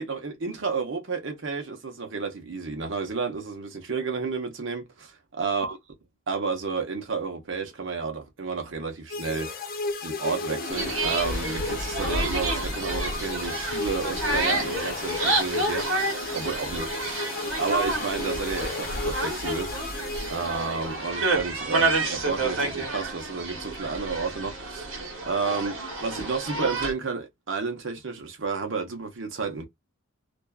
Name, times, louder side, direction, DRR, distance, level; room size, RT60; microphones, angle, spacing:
voice 1, 0.0-5.8 6.3-9.5 10.0-17.0 17.6-19.7 20.3-24.9 25.2-29.7, right 4 dB, 65° right, 0.8 m, -31 dB
sound 1, 9.1-20.9, left 3 dB, 45° left, 0.4 m, -33 dB
sound 2, 10.7-26.9, right 2 dB, 80° right, 1.1 m, -29 dB
2.5 x 2.2 x 2.3 m
head